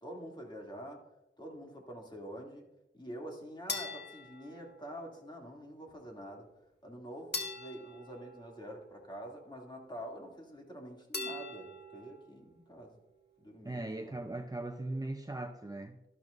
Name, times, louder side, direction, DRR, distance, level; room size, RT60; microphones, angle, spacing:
voice 1, 0.0-1.0 1.4-2.7 2.9-6.5 6.8-13.0 13.4-14.1, equal, 25° left, -1 dB, 2.7 m, -46 dB
sound 1, 3.7-5.2 7.3-9.2 11.1-12.3, left 3 dB, 55° left, 1.6 m, -42 dB
voice 2, 13.6-16.1, right 2 dB, 20° right, 4 dB, 0.7 m, -39 dB
12.5 x 12.0 x 2.6 m, 0.92 s
wide cardioid pair, 70°, 20 cm